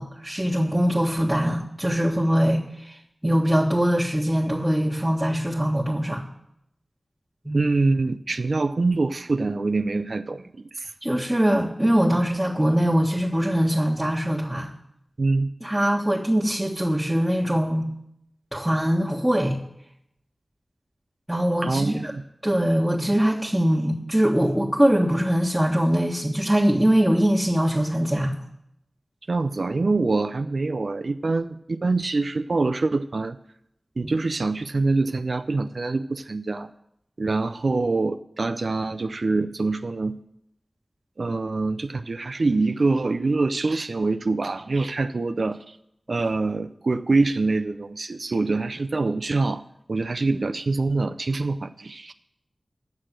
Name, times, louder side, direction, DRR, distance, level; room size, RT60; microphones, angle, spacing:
voice 1, 0.0-3.0 3.2-6.2 7.4-7.6 11.0-14.7 15.6-17.9 18.5-19.6 21.3-22.1 22.4-28.3 34.0-34.1, equal, 10° right, -6 dB, 1.4 m, -22 dB
voice 2, 7.5-10.9 15.2-15.5 21.6-22.2 29.3-33.4 34.0-36.7 37.2-40.2 41.2-45.8 46.1-49.6 49.9-52.1, right 3 dB, 70° right, 9 dB, 0.4 m, -25 dB
9.4 x 6.6 x 7.5 m, 0.77 s
wide cardioid pair, 55°, 0 cm